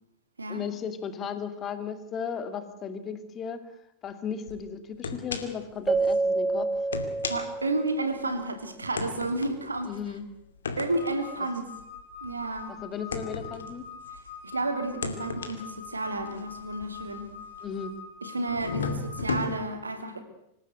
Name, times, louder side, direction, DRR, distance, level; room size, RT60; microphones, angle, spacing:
voice 1, 0.5-3.6 4.0-6.7 9.9-10.3 12.8-13.9 17.6-17.9, left 7 dB, 25° left, 9 dB, 2.4 m, -35 dB
sound 1, 4.5-4.6 5.0-5.7 6.0-6.2 6.8-8.3 9.0-14.4 14.9-18.0 18.5-19.5, left 4 dB, 70° left, 2.5 m, -36 dB
Keyboard (musical), 5.9-8.3, right 3 dB, 15° right, 2.2 m, -28 dB
voice 2, 7.3-9.9 10.8-11.7 12.2-12.7 14.1-17.3 18.2-20.2, right 2 dB, 80° right, 7 dB, 3.1 m, -31 dB
sound 2, 10.9-19.2, left 6 dB, 55° left, 2.7 m, -45 dB
26.0 x 16.5 x 7.9 m, 0.82 s
figure-of-eight pair, 90°, 0 cm